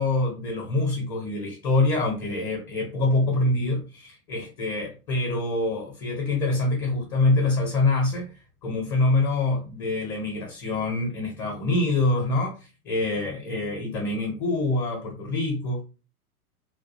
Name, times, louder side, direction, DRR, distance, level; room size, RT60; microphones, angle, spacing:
voice 1, 0.0-8.3 8.6-12.6 12.8-15.8, left 2 dB, 30° left, 0.7 m, -25 dB
2.3 x 2.1 x 2.9 m
figure-of-eight pair, 100°, 45 cm